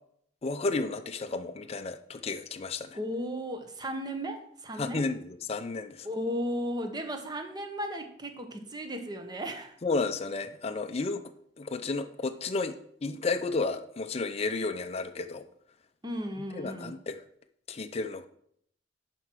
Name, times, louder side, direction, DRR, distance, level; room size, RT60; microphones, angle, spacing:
voice 1, 0.4-3.0 4.8-6.1 9.8-11.3 11.6-12.7 13.0-15.4 16.5-17.2 17.7-18.3, left 3 dB, 35° left, 7 dB, 0.5 m, -32 dB
voice 2, 2.9-5.0 6.0-9.8 16.0-17.0, equal, 25° right, 5 dB, 1.1 m, -35 dB
11.0 x 4.5 x 6.0 m, 0.67 s
head